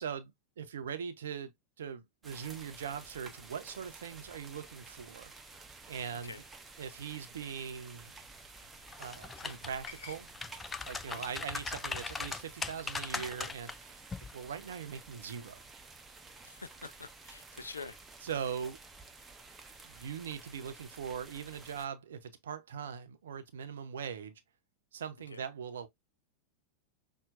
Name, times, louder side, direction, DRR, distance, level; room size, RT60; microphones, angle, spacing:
voice 1, 0.0-1.5 1.8-5.3 5.9-6.3 6.8-8.1 9.0-10.3 10.8-14.0 14.3-15.6 17.6-17.7 18.2-18.8 19.8-24.4 24.9-25.9, right 7 dB, 65° right, 0.6 m, -41 dB
sound 1, 2.2-21.9, right 3 dB, 15° right, 0.8 m, -52 dB
voice 2, 6.1-6.4 11.0-11.3 16.4-18.0 25.3-25.4, left 4 dB, 75° left, 0.4 m, -47 dB
sound 2, 8.0-13.2, left 7 dB, 50° left, 1.6 m, -57 dB
sound 3, 8.9-9.9 10.3-13.7 14.1-14.3, left 4 dB, 15° left, 0.4 m, -39 dB
5.7 x 2.4 x 2.4 m
figure-of-eight pair, 90°, 0 cm